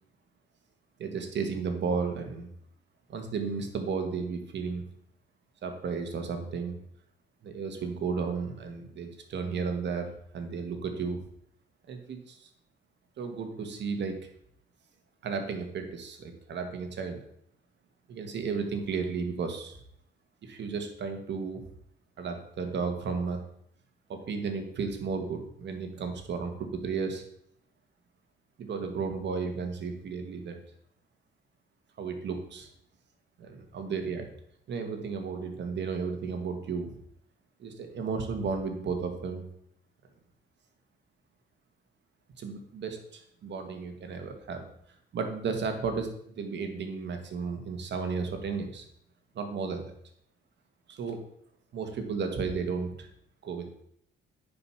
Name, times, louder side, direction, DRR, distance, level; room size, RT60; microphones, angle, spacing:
voice 1, 1.0-2.5 3.1-4.8 5.6-6.8 7.4-11.2 11.9-12.5 13.2-14.3 15.2-17.2 18.1-19.8 20.4-21.6 22.2-23.4 24.1-27.2 28.6-30.6 32.0-32.7 33.4-34.3 34.7-36.9 37.6-39.4 42.4-44.6 45.1-48.9 49.3-49.8 50.9-51.2 51.7-53.1 53.4-53.7, right 5 dB, 65° right, 5 dB, 1.9 m, -33 dB
9.6 x 5.4 x 5.8 m, 0.69 s
cardioid pair, 90°, 20 cm